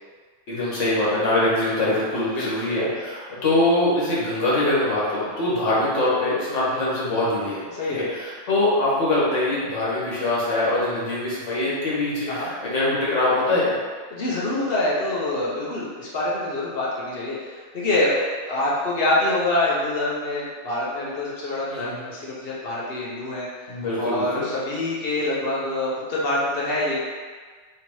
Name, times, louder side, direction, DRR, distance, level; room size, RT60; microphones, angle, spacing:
voice 1, 0.5-7.8 8.1-13.8 21.7-22.0 23.7-24.4, left 2 dB, 90° left, -7 dB, 1.4 m, -23 dB
voice 2, 14.1-23.5 24.0-27.0, left 2 dB, 55° left, -6 dB, 1.0 m, -25 dB
3.4 x 2.9 x 3.0 m, 1.5 s
omnidirectional pair, 1.2 m